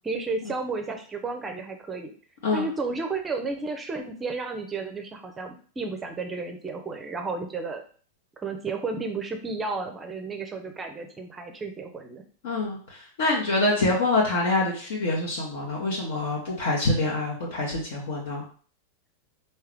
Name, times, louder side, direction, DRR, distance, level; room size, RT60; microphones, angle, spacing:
voice 1, 0.0-2.1 2.5-7.8 8.4-12.2, right 3 dB, 15° right, 5 dB, 0.6 m, -32 dB
voice 2, 12.4-18.4, left 2 dB, 55° left, -3 dB, 1.1 m, -26 dB
4.6 x 2.8 x 3.4 m, 0.42 s
figure-of-eight pair, 90°, 0 cm